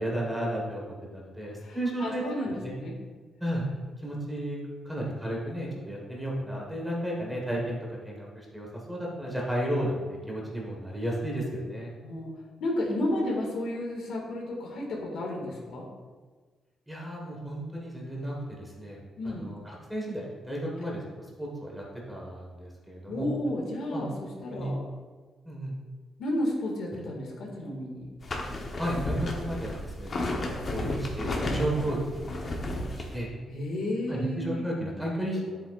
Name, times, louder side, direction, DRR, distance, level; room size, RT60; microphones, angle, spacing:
voice 1, 0.0-2.3 2.6-2.7 3.4-3.7 4.0-4.6 4.8-11.9 16.9-21.1 21.4-23.3 23.9-24.7 25.4-25.7 28.7-33.3 34.1-35.6, right 1 dB, 5° right, -2 dB, 1.5 m, -33 dB
voice 2, 1.6-3.0 12.0-12.3 12.6-15.9 19.2-19.5 23.1-24.8 26.2-28.1 33.5-34.6, left 1 dB, 70° left, -1 dB, 1.9 m, -32 dB
sound 1, 28.2-33.2, left 1 dB, 35° left, 0.9 m, -33 dB
10.5 x 7.9 x 2.5 m, 1.4 s
cardioid pair, 170°, 0 cm